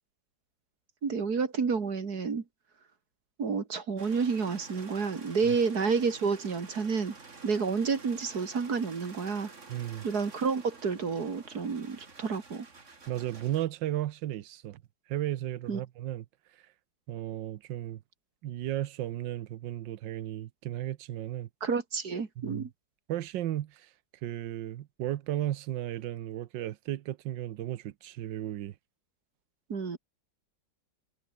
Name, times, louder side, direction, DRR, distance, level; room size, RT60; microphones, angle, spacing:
voice 1, 1.0-2.4 3.4-7.1 7.4-9.5 10.0-12.7 15.7-15.8 21.6-22.7 29.7-30.0, right 5 dB, 55° right, 2.6 m, -30 dB
sound 1, 4.0-13.7, right 4 dB, 40° right, 2.8 m, -50 dB
voice 2, 9.7-10.1 13.1-14.8 15.1-16.2 17.1-18.0 18.4-21.5 22.4-22.7 23.1-23.9 24.2-28.7, right 13 dB, 80° right, 1.5 m, -34 dB
omnidirectional pair, 2.0 m